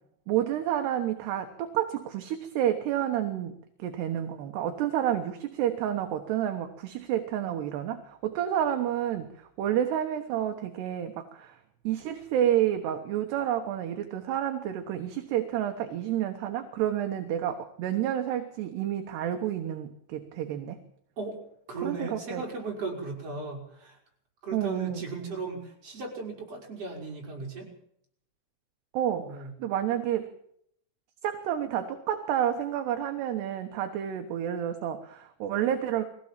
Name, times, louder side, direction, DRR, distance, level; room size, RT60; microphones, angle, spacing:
voice 1, 0.3-11.6 11.8-20.8 21.8-22.4 24.5-25.0 28.9-30.3 31.2-36.0, right 10 dB, 70° right, 6 dB, 3.2 m, -29 dB
voice 2, 21.7-24.0 24.4-27.7 29.1-29.5, right 3 dB, 30° right, 0 dB, 6.1 m, -36 dB
22.5 x 16.5 x 7.6 m, 0.70 s
omnidirectional pair, 5.4 m